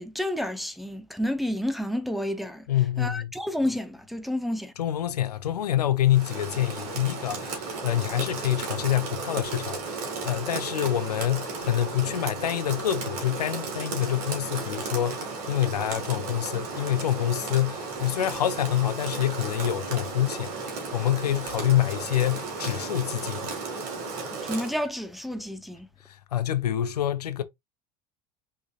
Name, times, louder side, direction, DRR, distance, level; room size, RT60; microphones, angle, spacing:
voice 1, 0.0-2.7 3.0-4.7 24.4-25.9, left 1 dB, ahead, 0.8 m, -30 dB
voice 2, 2.7-3.3 4.8-23.5 26.1-27.4, left 12 dB, 80° left, 0.6 m, -27 dB
Rain, 6.1-24.8, right 4 dB, 65° right, 2.3 m, -34 dB
5.2 x 3.9 x 2.5 m
figure-of-eight pair, 70°, 20 cm